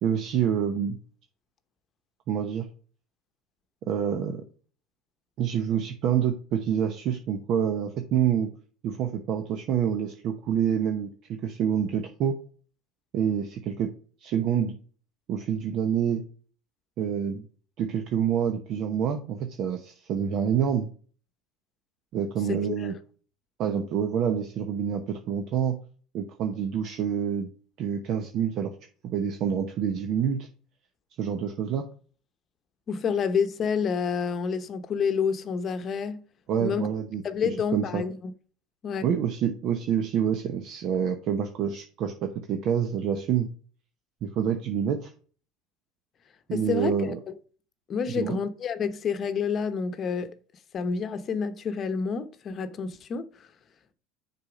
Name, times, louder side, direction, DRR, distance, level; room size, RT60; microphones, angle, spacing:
voice 1, 0.0-1.0 2.3-2.7 3.9-4.4 5.4-8.5 8.8-12.4 13.1-13.9 14.2-14.8 15.3-16.2 17.0-17.4 17.8-20.9 22.1-22.9 23.6-25.8 26.1-27.5 27.8-28.7 29.0-30.5 31.2-31.9 36.5-38.0 39.0-43.5 44.2-45.1 46.5-47.2 48.1-48.4, right 8 dB, 55° right, 0.9 m, -27 dB
voice 2, 32.9-36.2 36.6-36.9 37.2-38.3 38.8-39.1 46.5-47.3 47.9-50.3 50.7-53.5, left 6 dB, 40° left, 0.9 m, -29 dB
6.8 x 4.3 x 5.1 m
supercardioid pair, 105°, 0 cm